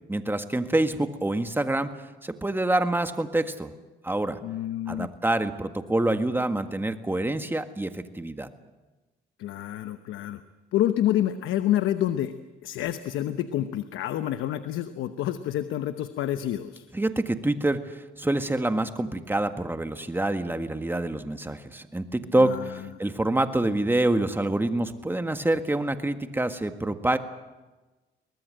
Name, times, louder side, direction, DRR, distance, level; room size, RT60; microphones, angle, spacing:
voice 1, 0.1-1.9 2.2-3.7 4.0-4.4 4.9-8.5 16.9-27.2, right 2 dB, 10° right, 8 dB, 1.7 m, -26 dB
voice 2, 4.4-5.1 9.4-10.4 10.7-12.3 12.6-16.9 22.4-22.9, left 12 dB, 85° left, 10 dB, 1.0 m, -28 dB
23.0 x 19.5 x 7.8 m, 1.2 s
cardioid pair, 90°, 20 cm